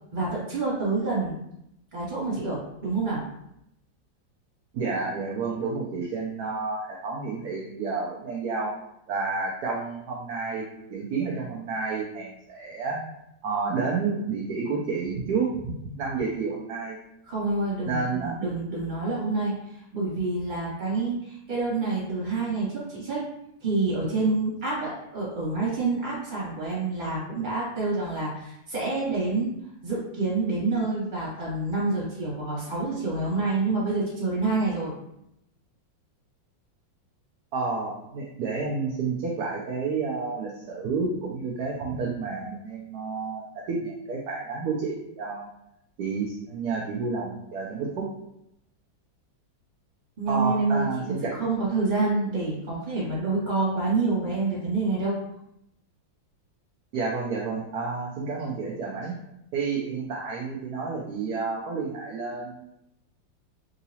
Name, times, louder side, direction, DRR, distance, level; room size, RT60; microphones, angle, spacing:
voice 1, 0.1-1.4 1.9-3.2 17.3-23.2 23.6-29.5 29.8-34.9 50.2-50.9 51.3-55.2, right 3 dB, 25° right, -7 dB, 1.5 m, -27 dB
voice 2, 4.7-8.8 9.1-13.0 13.4-17.0 17.9-18.4 37.5-45.5 46.0-48.1 50.3-51.3 56.9-59.1 59.5-62.6, right 4 dB, 70° right, -3 dB, 1.0 m, -30 dB
3.8 x 2.9 x 2.8 m, 0.80 s
omnidirectional pair, 2.1 m